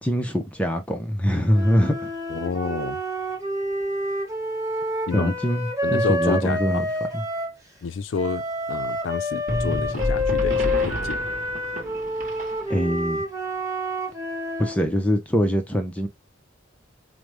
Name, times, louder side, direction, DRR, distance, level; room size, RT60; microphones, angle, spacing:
voice 1, 0.0-2.1 5.1-6.9 7.1-7.2 12.7-13.2 14.6-16.1, equal, 5° left, 0.5 m, -23 dB
sound 1, 1.5-7.6 8.1-14.8, left 1 dB, 15° right, 0.9 m, -28 dB
voice 2, 2.3-3.0 5.1-5.3 5.8-6.8 7.8-8.4 8.7-11.2, left 5 dB, 80° left, 0.4 m, -29 dB
sound 2, 9.5-13.0, equal, 40° right, 0.9 m, -29 dB
5.0 x 2.1 x 3.0 m
head